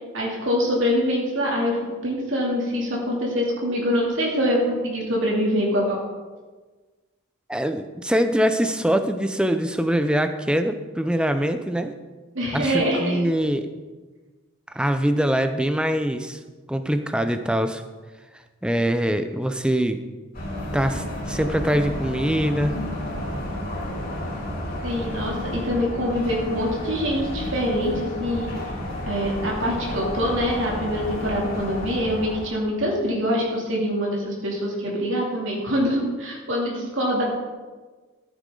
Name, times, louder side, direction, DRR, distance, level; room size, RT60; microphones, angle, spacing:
voice 1, 0.1-1.8 2.0-6.0 12.3-13.2 24.8-28.5 29.0-37.2, equal, 65° right, -3 dB, 2.8 m, -24 dB
voice 2, 7.5-11.9 12.5-13.7 14.7-16.4 16.7-17.8 18.6-20.0 20.7-22.8, equal, 5° right, 8 dB, 0.5 m, -23 dB
sound 1, 20.3-32.5, left 1 dB, 45° left, 3.9 m, -31 dB
14.0 x 8.3 x 3.8 m, 1.3 s
head